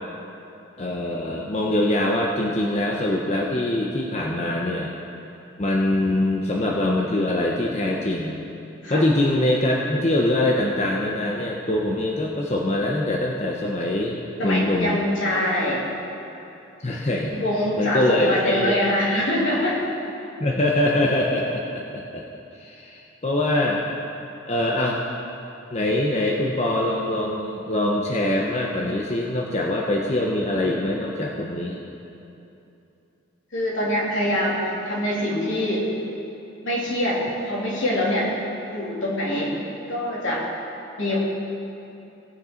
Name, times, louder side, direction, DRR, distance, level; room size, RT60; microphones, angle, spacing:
voice 1, 0.8-4.9 5.6-8.4 8.9-14.2 14.4-15.0 16.8-17.3 17.8-18.7 20.4-22.2 22.6-23.8 24.5-25.0 25.7-31.8, left 1 dB, 35° left, -2 dB, 0.8 m, -23 dB
voice 2, 14.4-15.9 17.3-19.8 33.5-35.9 36.6-38.3 38.7-39.6 39.9-40.5 41.0-41.2, left 1 dB, 80° left, -5 dB, 2.8 m, -24 dB
18.0 x 6.6 x 4.4 m, 2.8 s
head